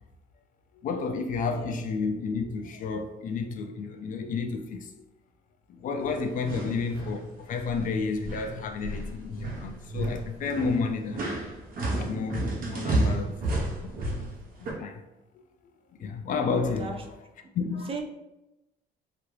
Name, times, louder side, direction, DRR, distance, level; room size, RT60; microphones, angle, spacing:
voice 1, 0.8-5.0 5.7-11.3 11.9-13.3 13.8-14.3 14.8-15.0 16.0-17.1 17.5-17.9, left 4 dB, 50° left, 0.4 m, -31 dB
voice 2, 1.5-1.8 6.4-6.7 16.8-17.0 17.9-18.0, right 4 dB, 35° right, 0.5 m, -37 dB
sound 1, 6.0-7.2 7.5-7.9 8.2-14.7, right 2 dB, 55° right, 0.9 m, -31 dB
2.9 x 2.4 x 3.1 m
cardioid pair, 110°, 17 cm